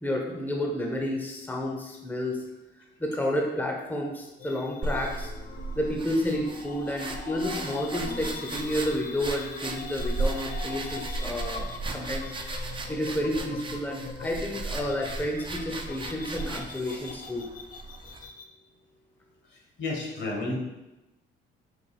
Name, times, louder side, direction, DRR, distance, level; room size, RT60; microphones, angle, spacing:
voice 1, 0.0-2.4 3.0-5.3 5.7-12.3 12.9-17.4, left 1 dB, 10° left, 0 dB, 0.7 m, -30 dB
sound 1, 4.4-18.5, left 5 dB, 45° left, 0.5 m, -42 dB
Tied up and struggling, 4.8-18.3, right 2 dB, 25° right, 0.5 m, -36 dB
voice 2, 19.8-20.6, left 2 dB, 60° left, 0 dB, 1.2 m, -31 dB
4.6 x 2.5 x 4.2 m, 0.99 s
cardioid pair, 90°, 20 cm